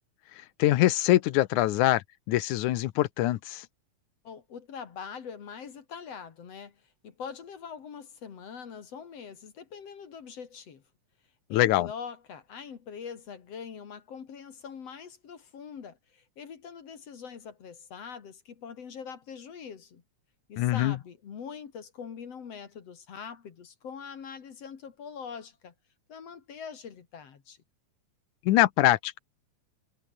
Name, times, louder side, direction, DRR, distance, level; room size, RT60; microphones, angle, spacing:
voice 1, 0.6-3.7 11.5-11.9 20.6-21.0 28.5-29.2, left 15 dB, 80° left, 2.3 m, -24 dB
voice 2, 4.2-10.8 11.5-20.0 20.5-25.7 26.1-27.6, left 6 dB, 55° left, 3.1 m, -43 dB
omnidirectional pair, 3.5 m